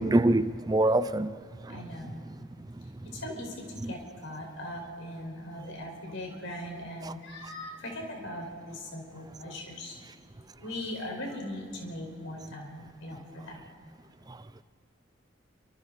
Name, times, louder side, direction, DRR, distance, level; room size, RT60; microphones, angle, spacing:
voice 1, 0.0-1.3, right 1 dB, 20° right, 0.5 m, -24 dB
voice 2, 1.7-2.2 3.0-13.6, left 1 dB, 80° left, 5.0 m, -40 dB
28.5 x 25.0 x 4.1 m
head